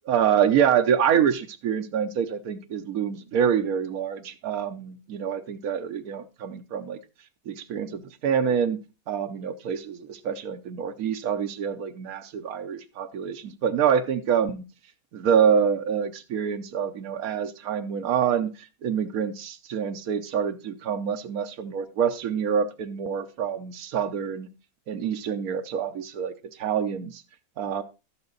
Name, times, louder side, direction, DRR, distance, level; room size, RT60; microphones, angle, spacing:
voice 1, 0.1-7.0 7.5-8.8 9.1-14.7 15.1-24.5 24.9-26.3 26.6-27.2 27.6-27.8, right 8 dB, 75° right, 1.3 m, -26 dB
12.0 x 7.8 x 3.9 m
omnidirectional pair, 1.5 m